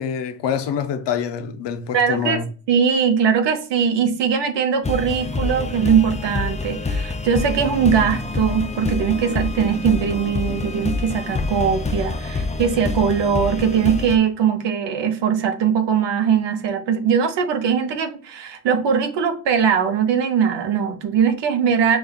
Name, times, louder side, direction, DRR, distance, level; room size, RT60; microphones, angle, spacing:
voice 1, 0.0-2.5, left 7 dB, 85° left, 0.6 m, -25 dB
voice 2, 1.9-2.4 2.7-22.0, right 7 dB, 85° right, 0.7 m, -20 dB
sound 1, 4.8-14.2, left 3 dB, 20° left, 0.4 m, -26 dB
5.0 x 2.3 x 2.3 m
cardioid pair, 75°, 41 cm